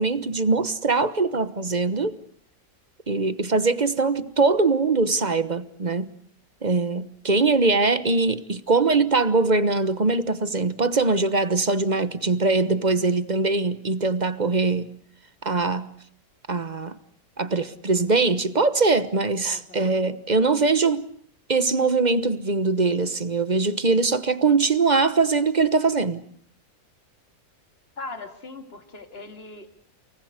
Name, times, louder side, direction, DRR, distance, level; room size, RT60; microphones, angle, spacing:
voice 1, 0.0-2.2 3.1-6.1 6.6-14.9 15.4-15.9 16.5-17.0 17.4-21.1 21.5-26.2, right 3 dB, 30° right, 1.1 m, -22 dB
voice 2, 19.5-19.8 28.0-29.7, left 3 dB, 40° left, 2.8 m, -39 dB
29.5 x 19.5 x 8.1 m
omnidirectional pair, 1.6 m